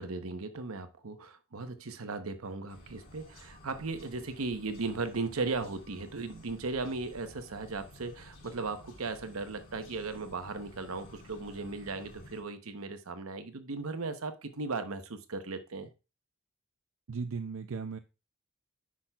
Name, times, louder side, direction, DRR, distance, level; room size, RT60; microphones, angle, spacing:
voice 1, 0.0-15.9, right 3 dB, 85° right, 0.9 m, -37 dB
sound 1, 2.7-12.4, left 1 dB, 45° left, 3.7 m, -54 dB
voice 2, 17.1-18.0, right 5 dB, 70° right, 0.5 m, -36 dB
9.9 x 6.1 x 2.3 m
head